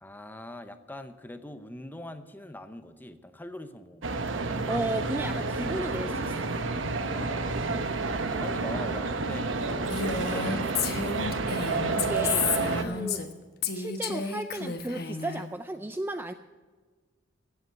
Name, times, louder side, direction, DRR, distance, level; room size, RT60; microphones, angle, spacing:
voice 1, 0.0-4.7 6.8-7.8 8.3-11.3, left 1 dB, 10° left, 10 dB, 0.7 m, -43 dB
sound 1, 4.0-12.8, right 3 dB, 80° right, 1.0 m, -30 dB
voice 2, 4.7-6.5 11.9-12.5 12.8-13.2 13.7-16.3, right 1 dB, 10° right, 9 dB, 0.4 m, -34 dB
Female speech woman speaking, 9.9-13.3 13.6-15.4, left 6 dB, 55° left, 1.2 m, -31 dB
15.5 x 8.0 x 6.9 m, 1.5 s
head